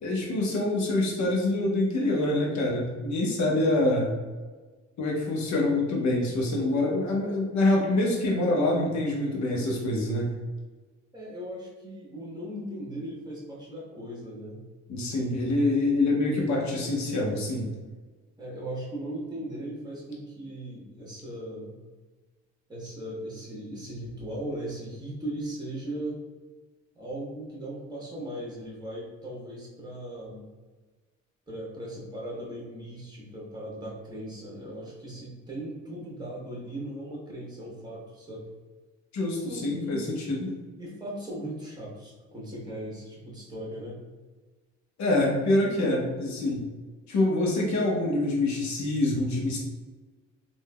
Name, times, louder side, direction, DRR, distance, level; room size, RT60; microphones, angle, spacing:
voice 1, 0.0-4.1 5.0-10.3 14.9-17.7 39.1-40.5 45.0-46.6 47.1-49.6, left 2 dB, 70° left, -1 dB, 1.0 m, -25 dB
voice 2, 11.1-14.6 15.8-16.3 18.4-21.7 22.7-26.2 26.9-30.4 31.5-38.5 39.4-40.2 40.8-44.0 47.1-47.2, right 1 dB, 15° right, -4 dB, 1.2 m, -38 dB
3.5 x 2.7 x 2.2 m, 1.3 s
cardioid pair, 90°, 30 cm